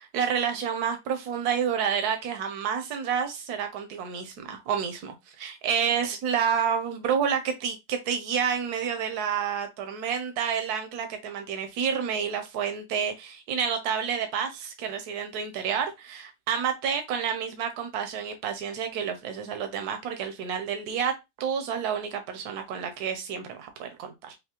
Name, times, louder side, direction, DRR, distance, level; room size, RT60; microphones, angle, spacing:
voice 1, 0.0-24.4, right 7 dB, 80° right, 1.2 m, -29 dB
5.7 x 2.0 x 2.9 m
omnidirectional pair, 1.6 m